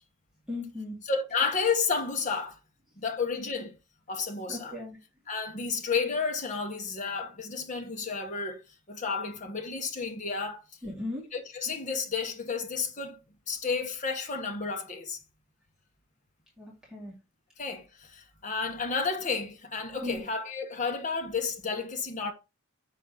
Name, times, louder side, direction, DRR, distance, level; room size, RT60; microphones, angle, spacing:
voice 1, 0.5-1.0 4.5-5.0 10.8-11.2 16.6-17.1 20.0-20.2, left 2 dB, 5° right, 2.5 m, -37 dB
voice 2, 1.1-2.6 3.0-3.8 4.1-4.8 5.3-8.6 8.9-10.6 11.3-13.2 13.5-15.2 17.6-22.3, left 5 dB, 35° left, 1.1 m, -31 dB
6.1 x 4.6 x 3.8 m
head